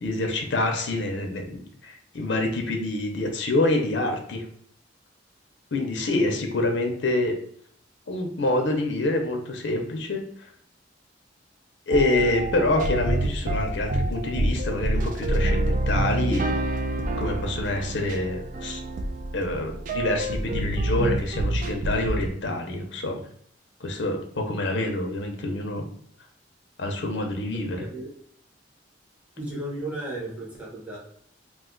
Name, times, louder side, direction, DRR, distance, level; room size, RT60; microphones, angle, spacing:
voice 1, 0.0-4.4 5.7-7.4 8.1-10.2 11.9-16.5 17.2-18.8 19.3-23.2 23.8-25.9 26.8-27.8, left 2 dB, 75° left, 3 dB, 0.6 m, -26 dB
sound 1, 11.9-22.3, right 1 dB, 45° right, 0.3 m, -27 dB
voice 2, 27.7-28.1 29.4-31.0, right 1 dB, 10° right, -5 dB, 1.0 m, -34 dB
2.5 x 2.3 x 3.7 m, 0.64 s
head